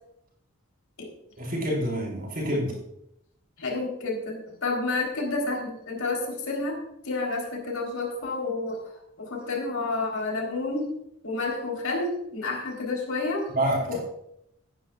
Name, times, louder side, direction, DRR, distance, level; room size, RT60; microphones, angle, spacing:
voice 1, 1.4-2.8 13.5-14.0, right 1 dB, 40° right, -2 dB, 5.2 m, -27 dB
voice 2, 3.6-6.8 7.0-8.8 9.2-10.9 11.2-13.4 13.9-14.0, left 3 dB, 90° left, 0 dB, 4.1 m, -29 dB
18.0 x 10.5 x 2.5 m, 0.78 s
head